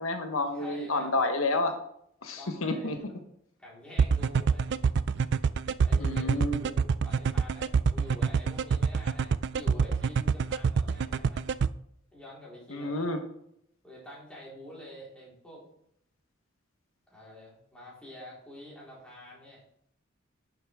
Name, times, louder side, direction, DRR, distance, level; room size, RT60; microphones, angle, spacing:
voice 1, 0.0-1.7 2.2-3.0 6.0-6.6 12.7-13.2, left 2 dB, 85° left, 6 dB, 1.1 m, -29 dB
voice 2, 0.5-1.2 2.4-3.2 3.6-4.9 5.8-11.4 12.1-13.1 13.8-15.7 17.1-19.6, equal, 5° left, -6 dB, 4.2 m, -47 dB
sound 1, 4.0-11.7, right 5 dB, 55° right, 0.4 m, -25 dB
11.0 x 7.3 x 3.6 m, 0.72 s
head